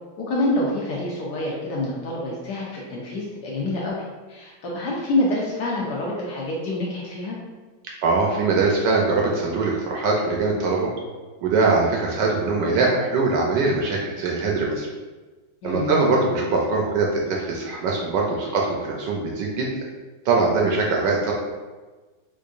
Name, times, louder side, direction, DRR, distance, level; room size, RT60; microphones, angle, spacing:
voice 1, 0.2-4.0 4.3-7.4 15.6-15.9, left 1 dB, 65° left, -4 dB, 1.1 m, -26 dB
voice 2, 8.0-10.9 11.4-14.9 15.6-19.7 20.3-21.3, right 3 dB, 75° right, -1 dB, 1.1 m, -22 dB
4.5 x 2.5 x 2.4 m, 1.3 s
omnidirectional pair, 2.2 m